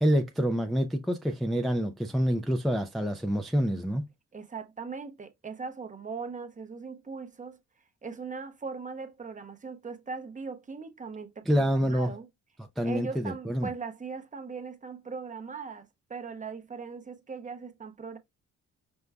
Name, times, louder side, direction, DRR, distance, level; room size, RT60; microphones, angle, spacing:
voice 1, 0.0-4.0 11.5-12.1 12.8-13.7, equal, ahead, 0.4 m, -27 dB
voice 2, 4.3-7.6 8.0-12.3 12.8-18.2, right 5 dB, 25° right, 0.8 m, -39 dB
5.2 x 2.2 x 3.4 m
cardioid pair, 90°, 30 cm